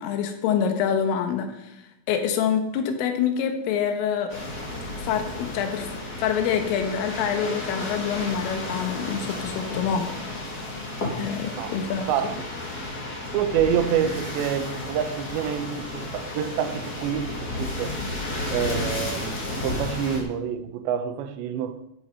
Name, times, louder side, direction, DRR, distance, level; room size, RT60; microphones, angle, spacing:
voice 1, 0.0-1.7 2.1-4.3 5.0-5.9 6.2-10.1 11.2-12.1, left 7 dB, 85° left, 4.0 m, -26 dB
sound 1, 4.3-20.2, left 2 dB, 25° left, 2.2 m, -33 dB
voice 2, 12.1-12.5 13.3-18.0 18.5-21.8, right 9 dB, 75° right, 2.8 m, -27 dB
14.0 x 8.5 x 5.5 m
omnidirectional pair, 5.7 m